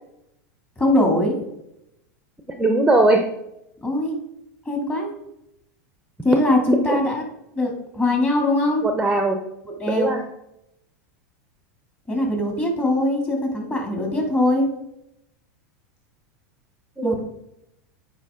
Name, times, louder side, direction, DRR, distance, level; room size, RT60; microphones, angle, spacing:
voice 1, 0.8-1.4 3.8-4.2 4.7-5.1 6.2-7.2 7.6-8.9 9.8-10.1 12.1-14.7 17.0-17.1, left 1 dB, 20° left, 1 dB, 2.6 m, -21 dB
voice 2, 2.6-3.2 6.9-7.0 8.8-9.4 9.9-10.2 17.0-17.2, right 2 dB, 5° right, 4 dB, 0.8 m, -19 dB
8.2 x 5.0 x 3.7 m, 0.82 s
hypercardioid pair, 115°, 9 cm